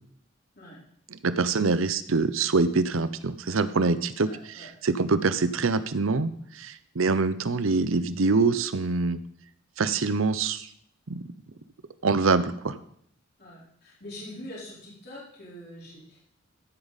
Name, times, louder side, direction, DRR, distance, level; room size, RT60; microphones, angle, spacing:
voice 1, 1.1-9.2 9.8-10.7 11.1-11.3 12.0-12.8, right 4 dB, 85° right, 13 dB, 0.7 m, -25 dB
voice 2, 4.2-4.7 13.4-16.2, left 1 dB, 50° left, -6 dB, 4.2 m, -44 dB
14.5 x 8.8 x 4.1 m, 0.66 s
head